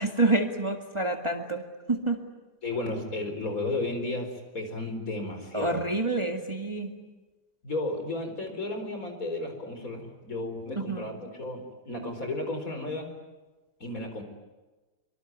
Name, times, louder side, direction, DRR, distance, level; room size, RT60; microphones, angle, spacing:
voice 1, 0.0-1.6 1.9-2.2 5.5-6.9 10.8-11.1, right 2 dB, 20° right, 3 dB, 2.1 m, -27 dB
voice 2, 2.6-5.9 7.6-13.1 13.8-14.2, left 2 dB, 55° left, 6 dB, 4.9 m, -33 dB
25.0 x 24.0 x 9.3 m, 1.2 s
omnidirectional pair, 1.7 m